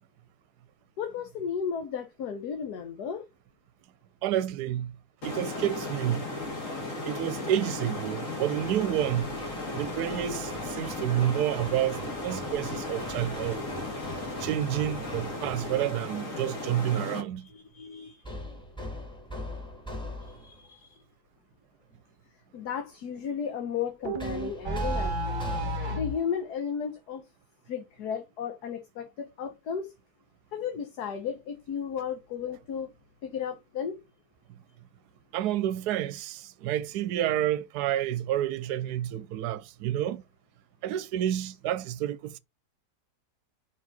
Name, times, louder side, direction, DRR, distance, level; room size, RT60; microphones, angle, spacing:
voice 1, 1.0-3.2 17.4-18.2 20.3-21.0 22.5-25.4 25.9-27.2 27.7-29.9 30.5-32.9 33.2-34.0, left 7 dB, 70° left, 1.5 m, -34 dB
voice 2, 4.2-4.9 5.2-6.3 7.1-9.3 9.8-13.6 14.4-17.5 35.3-40.2 40.8-42.4, right 12 dB, 75° right, 1.1 m, -29 dB
sound 1, 5.2-17.2, left 2 dB, 50° left, 2.4 m, -36 dB
Hammer, 8.6-16.0 18.2-20.7 24.2-26.1, equal, 5° left, 1.7 m, -42 dB
sound 2, 24.0-26.2, right 1 dB, 30° right, 1.3 m, -31 dB
5.5 x 4.7 x 4.0 m
omnidirectional pair, 1.8 m